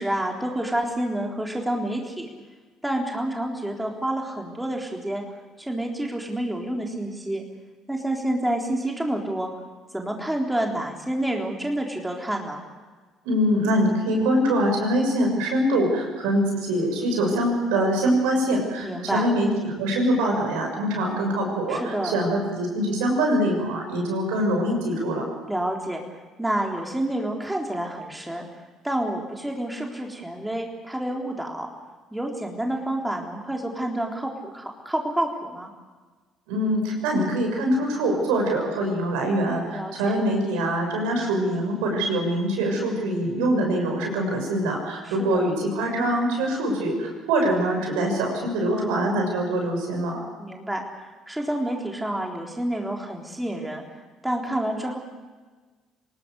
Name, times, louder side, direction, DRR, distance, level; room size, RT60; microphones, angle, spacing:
voice 1, 0.0-2.3 2.8-7.4 7.9-9.5 9.9-12.6 18.8-19.2 21.7-22.2 25.5-28.4 28.8-31.7 32.1-35.7 39.6-40.1 45.0-45.5 48.7-49.1 50.4-53.8 54.2-55.0, right 1 dB, 10° right, 1 dB, 3.9 m, -29 dB
voice 2, 13.2-25.2 36.5-50.2, right 1 dB, 70° right, 2 dB, 6.6 m, -24 dB
27.5 x 19.0 x 6.8 m, 1.3 s
figure-of-eight pair, 50°, 0 cm